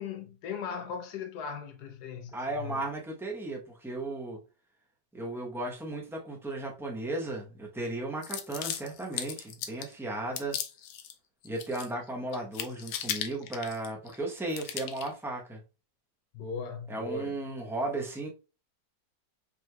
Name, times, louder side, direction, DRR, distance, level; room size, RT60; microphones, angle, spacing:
voice 1, 0.0-2.8 16.3-17.3, left 5 dB, 70° left, 1.1 m, -38 dB
voice 2, 2.3-4.4 5.1-10.6 11.4-15.6 16.9-18.3, right 2 dB, 5° right, 0.3 m, -35 dB
sound 1, 8.2-9.9 10.4-11.1 11.4-12.1 12.3-14.2 14.5-15.1, left 9 dB, 85° left, 1.3 m, -37 dB
5.3 x 3.2 x 2.3 m
omnidirectional pair, 1.9 m